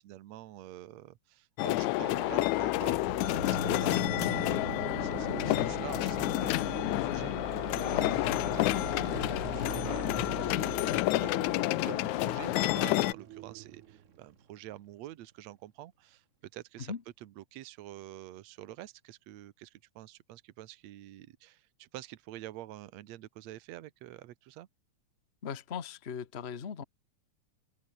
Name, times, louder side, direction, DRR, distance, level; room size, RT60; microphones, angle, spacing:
voice 1, 0.0-11.4 11.8-16.9 17.2-24.7, right 14 dB, 70° right, 2.2 m, -47 dB
sound 1, 1.6-13.1, left 20 dB, 85° left, 1.9 m, -30 dB
sound 2, 2.1-14.1, right 6 dB, 40° right, 1.2 m, -42 dB
sound 3, 7.3-14.3, right 17 dB, 85° right, 2.2 m, -47 dB
voice 2, 25.4-26.8, left 7 dB, 50° left, 0.7 m, -38 dB
omnidirectional pair, 3.4 m